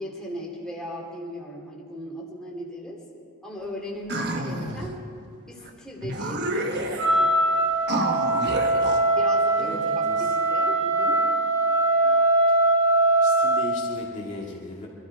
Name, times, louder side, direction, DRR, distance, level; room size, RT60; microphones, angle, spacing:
voice 1, 0.0-3.0 3.4-5.0 5.5-7.3 9.0-11.3, equal, 5° left, -4 dB, 2.6 m, -37 dB
sound 1, 4.1-5.0 5.7-5.8 6.0-7.2 7.9-9.0, right 1 dB, 50° right, 1.2 m, -28 dB
Wind instrument woodwind instrument, 7.0-13.8, right 2 dB, 70° right, 2.2 m, -21 dB
voice 2, 9.6-10.3 13.2-14.9, left 2 dB, 35° left, -3 dB, 2.0 m, -37 dB
23.5 x 13.0 x 4.6 m, 2.3 s
head